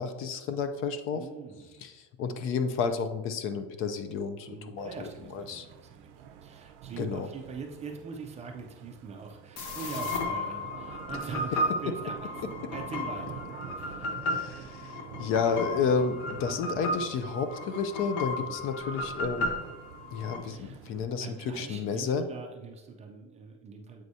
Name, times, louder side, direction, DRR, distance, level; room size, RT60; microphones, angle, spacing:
voice 1, 0.0-1.2 1.8-5.7 7.0-7.3 14.2-19.5 20.1-22.2, left 5 dB, 45° left, 9 dB, 0.4 m, -31 dB
voice 2, 1.1-1.9 4.5-6.1 6.4-12.4 12.7-13.4 13.8-14.1 18.3-18.6 20.5-20.8 21.2-24.0, right 5 dB, 25° right, 3 dB, 0.4 m, -43 dB
sound 1, 4.8-21.1, right 9 dB, 75° right, 0.5 m, -47 dB
sound 2, 9.6-20.4, left 1 dB, 70° left, 1.1 m, -34 dB
7.6 x 4.7 x 2.7 m, 1.1 s
cardioid pair, 170°, 30 cm